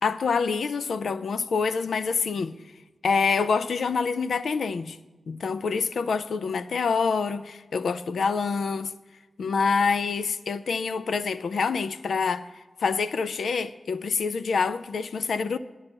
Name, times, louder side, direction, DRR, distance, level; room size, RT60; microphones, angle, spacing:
voice 1, 0.0-2.6 3.0-5.0 5.3-8.9 9.4-12.5 12.8-15.6, left 5 dB, 90° left, 0.4 m, -26 dB
10.5 x 5.5 x 8.1 m
wide cardioid pair, 75°, 0 cm